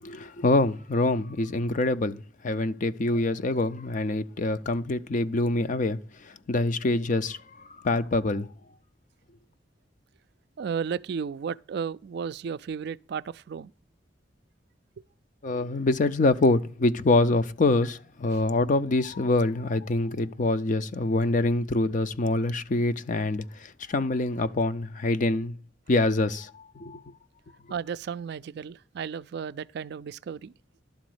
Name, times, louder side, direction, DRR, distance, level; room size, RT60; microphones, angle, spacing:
voice 1, 0.0-8.5 15.4-25.5 25.9-27.0, left 2 dB, 45° left, 0.5 m, -25 dB
voice 2, 10.6-13.7 27.7-30.5, right 6 dB, 60° right, 0.4 m, -34 dB
11.5 x 4.1 x 7.8 m
head